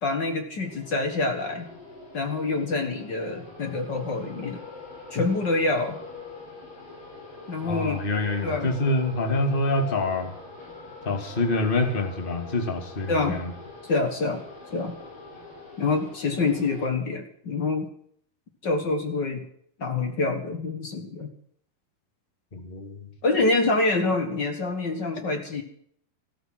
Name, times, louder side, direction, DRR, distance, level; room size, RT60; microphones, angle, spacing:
voice 1, 0.0-1.7 2.1-4.6 5.1-6.0 7.5-8.0 8.4-8.7 13.1-13.4 13.8-14.4 14.7-14.9 15.8-17.9 18.6-19.4 19.8-21.3 23.2-25.6, left 3 dB, 55° left, 5 dB, 1.2 m, -26 dB
sound 1, 0.6-16.8, left 3 dB, 70° left, 8.7 m, -44 dB
voice 2, 7.6-10.3 11.0-13.5 22.5-23.1, left 2 dB, 20° left, 5 dB, 1.4 m, -26 dB
14.0 x 13.5 x 6.0 m, 0.65 s
omnidirectional pair, 4.6 m